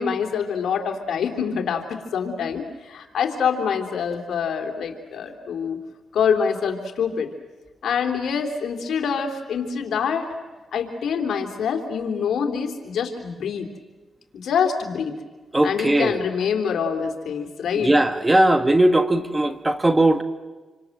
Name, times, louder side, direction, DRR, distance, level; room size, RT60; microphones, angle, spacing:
voice 1, 0.0-5.8 6.1-7.3 7.8-10.3 10.7-13.7 14.3-15.2 15.6-17.9, left 6 dB, 75° left, 3 dB, 3.4 m, -25 dB
voice 2, 15.5-16.2 17.8-20.2, right 1 dB, 20° right, 9 dB, 1.8 m, -18 dB
27.5 x 25.5 x 7.9 m, 1.3 s
cardioid pair, 65°, 0 cm